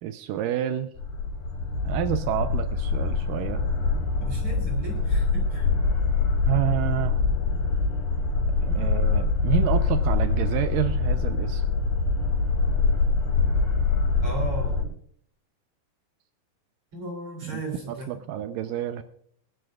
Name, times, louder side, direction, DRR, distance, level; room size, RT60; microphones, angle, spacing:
voice 1, 0.0-0.9 1.8-3.6 6.5-7.2 8.6-11.6 17.4-17.6 18.1-19.0, right 11 dB, 90° right, 8 dB, 1.9 m, -28 dB
sound 1, 1.0-14.8, left 4 dB, 80° left, 7.2 m, -24 dB
voice 2, 4.2-5.7 14.2-14.8 16.9-18.2, right 2 dB, 40° right, 0 dB, 3.7 m, -36 dB
24.0 x 11.5 x 2.4 m, 0.63 s
omnidirectional pair, 4.7 m